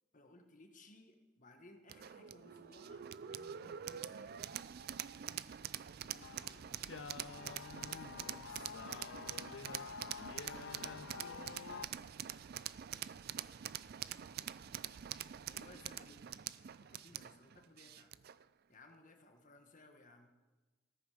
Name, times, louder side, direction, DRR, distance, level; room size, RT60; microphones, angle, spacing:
voice 1, 0.1-4.4 5.9-8.8 11.1-12.1 12.5-12.6 12.9-13.2 15.5-16.4 16.8-18.1 18.7-20.3, left 2 dB, 40° left, 4 dB, 1.5 m, -62 dB
sound 1, 1.9-18.4, right 10 dB, 45° right, 0.3 m, -45 dB
sound 2, 6.2-11.9, left 5 dB, 60° left, 0.5 m, -48 dB
voice 2, 11.5-12.1 13.8-15.6, equal, 70° right, -1 dB, 3.1 m, -73 dB
14.5 x 13.5 x 5.0 m, 1.2 s
head